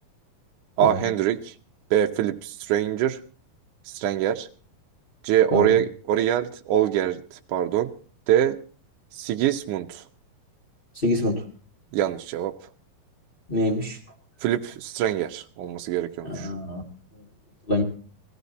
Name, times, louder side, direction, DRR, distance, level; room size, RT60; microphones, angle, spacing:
voice 1, 0.8-1.5 1.9-3.2 3.9-4.5 5.2-7.9 8.3-8.6 9.2-10.0 11.9-12.6 14.4-16.5, right 11 dB, 75° right, 3 dB, 2.0 m, -24 dB
voice 2, 11.0-11.4 13.5-14.0 16.2-16.8 17.7-17.8, left 1 dB, 30° left, 0 dB, 1.0 m, -25 dB
18.5 x 15.0 x 4.1 m, 0.41 s
omnidirectional pair, 4.3 m